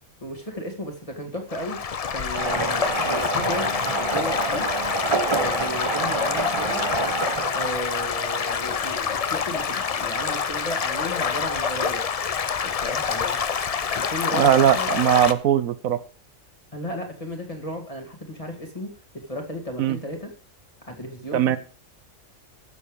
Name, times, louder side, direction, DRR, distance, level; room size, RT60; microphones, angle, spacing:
voice 1, 0.2-1.8 2.1-4.7 5.2-6.8 7.5-12.0 12.6-13.5 13.9-14.9 16.7-18.9 19.3-20.3 20.9-21.6, equal, 25° left, 3 dB, 2.3 m, -34 dB
Stream / Gurgling / Trickle dribble, 1.5-15.3, left 6 dB, 55° left, 0.4 m, -27 dB
sound 1, 2.3-14.1, right 3 dB, 25° right, 0.8 m, -29 dB
voice 2, 14.3-16.0 19.8-20.0 21.3-21.6, right 10 dB, 80° right, 13 dB, 1.1 m, -19 dB
13.5 x 7.0 x 5.1 m, 0.41 s
omnidirectional pair, 1.4 m